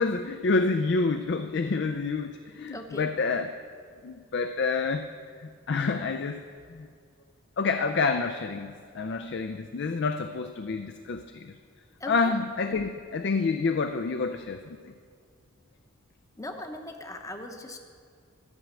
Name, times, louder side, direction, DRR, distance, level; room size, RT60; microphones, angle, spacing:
voice 1, 0.0-3.5 4.0-5.1 5.4-6.4 6.7-6.9 7.6-11.5 12.1-14.9, left 4 dB, 55° left, 7 dB, 0.4 m, -28 dB
voice 2, 2.7-3.1 12.0-12.3 16.4-17.8, left 1 dB, 15° left, 5 dB, 0.8 m, -39 dB
13.5 x 6.1 x 8.9 m, 2.1 s
head